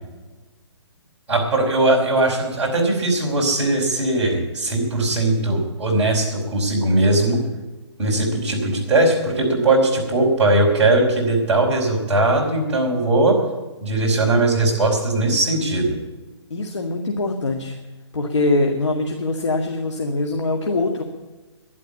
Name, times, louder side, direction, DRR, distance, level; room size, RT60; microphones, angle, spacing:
voice 1, 1.3-7.4 8.0-13.4 13.8-16.0, right 2 dB, 10° right, -6 dB, 3.9 m, -19 dB
voice 2, 16.5-17.8 18.1-21.0, left 2 dB, 85° left, 3 dB, 2.2 m, -23 dB
12.0 x 11.0 x 8.4 m, 1.2 s
hypercardioid pair, 170°, 15 cm